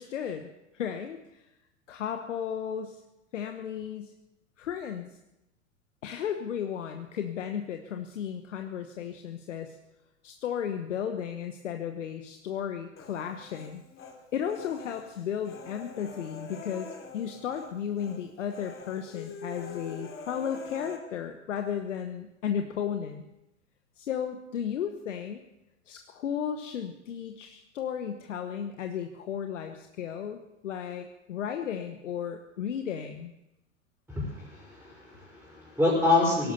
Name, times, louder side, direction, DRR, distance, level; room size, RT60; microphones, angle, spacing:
voice 1, 0.0-1.5 1.9-3.0 3.3-4.1 4.6-5.1 6.0-9.8 10.2-13.8 14.3-16.9 17.1-23.2 24.0-25.4 25.9-33.3, left 8 dB, 75° left, 6 dB, 1.2 m, -34 dB
Human voice, 13.0-14.2 14.5-17.7 18.0-18.2 18.5-21.0, left 4 dB, 35° left, 3.2 m, -44 dB
voice 2, 34.1-36.5, left 2 dB, 5° right, -5 dB, 5.4 m, -27 dB
18.0 x 11.5 x 6.9 m, 0.92 s
hypercardioid pair, 95°, 37 cm